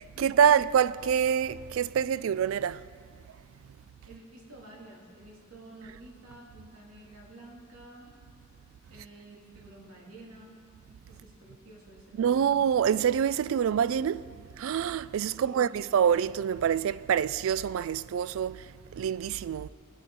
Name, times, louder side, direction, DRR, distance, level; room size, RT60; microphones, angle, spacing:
voice 1, 0.0-2.8 12.2-14.3 14.6-19.7, right 8 dB, 65° right, 0.3 m, -26 dB
voice 2, 4.1-8.1 8.9-10.6 11.1-12.8 15.4-15.9, right 2 dB, 85° right, 2.6 m, -51 dB
20.0 x 8.0 x 4.6 m
head